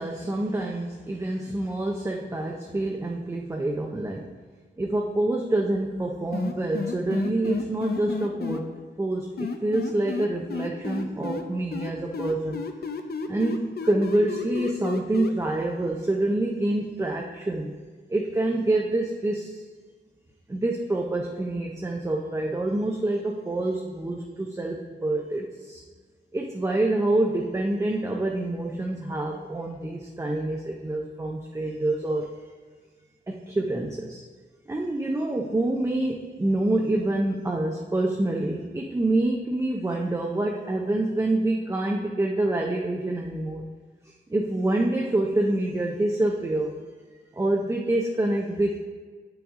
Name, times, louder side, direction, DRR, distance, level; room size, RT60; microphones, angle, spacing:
voice 1, 0.0-4.3 4.8-8.7 9.0-12.6 13.3-17.8 18.1-19.6 20.5-25.8 26.3-32.3 33.3-34.2 34.7-43.6 44.3-46.7 47.3-48.8, right 2 dB, 15° right, 0 dB, 0.5 m, -26 dB
sound 1, 6.3-8.6 9.4-11.4 11.7-15.3, left 5 dB, 60° left, 0.6 m, -31 dB
8.7 x 6.1 x 3.6 m, 1.5 s
wide cardioid pair, 170°, 19 cm